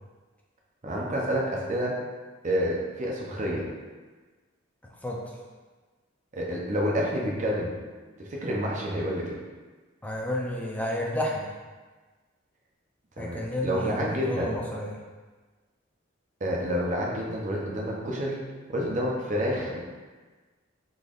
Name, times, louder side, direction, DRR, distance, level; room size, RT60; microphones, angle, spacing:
voice 1, 0.8-1.9 2.4-3.6 6.3-7.7 8.2-9.3 13.2-14.5 16.4-18.4 18.7-19.8, equal, 40° right, -3 dB, 0.7 m, -28 dB
voice 2, 5.0-5.4 10.0-11.5 13.2-15.0, left 1 dB, 10° left, -2 dB, 0.5 m, -31 dB
3.9 x 3.3 x 2.5 m, 1.3 s
head